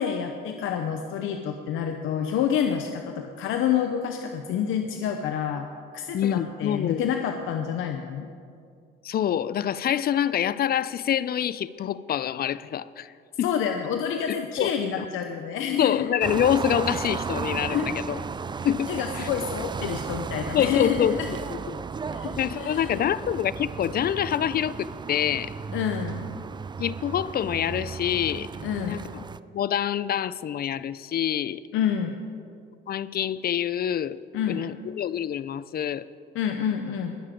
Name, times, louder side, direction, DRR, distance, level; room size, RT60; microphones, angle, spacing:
voice 1, 0.0-5.7 5.9-8.3 13.4-16.1 17.7-17.9 18.9-21.3 22.1-23.0 25.7-26.3 28.6-29.0 31.7-32.1 34.3-34.6 36.3-37.1, left 8 dB, 90° left, 5 dB, 0.7 m, -28 dB
voice 2, 6.1-7.0 9.0-13.1 13.4-13.5 14.6-14.7 15.0-15.1 15.8-18.2 18.6-18.9 19.2-19.3 20.5-21.2 21.7-21.8 22.4-25.5 26.8-28.5 28.8-29.0 29.5-31.6 32.9-34.2 34.5-36.1, left 10 dB, 50° left, 18 dB, 0.4 m, -26 dB
sound 1, 16.2-29.4, right 5 dB, 25° right, 0.3 m, -34 dB
20.5 x 7.5 x 5.1 m, 2.3 s
cardioid pair, 90°, 20 cm